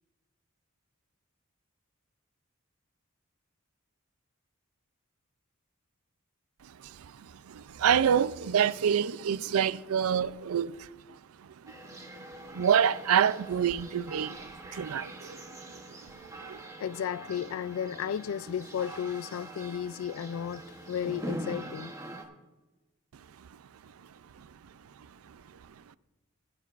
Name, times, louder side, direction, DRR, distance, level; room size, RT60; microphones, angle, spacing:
voice 1, 7.5-10.9 12.5-15.4 16.5-16.6 24.4-24.5 25.3-25.4, right 8 dB, 90° right, 0.4 m, -27 dB
sound 1, 11.7-22.2, right 1 dB, 15° right, 1.0 m, -43 dB
voice 2, 16.4-21.9, left 8 dB, 75° left, 0.3 m, -34 dB
15.5 x 10.5 x 2.5 m
head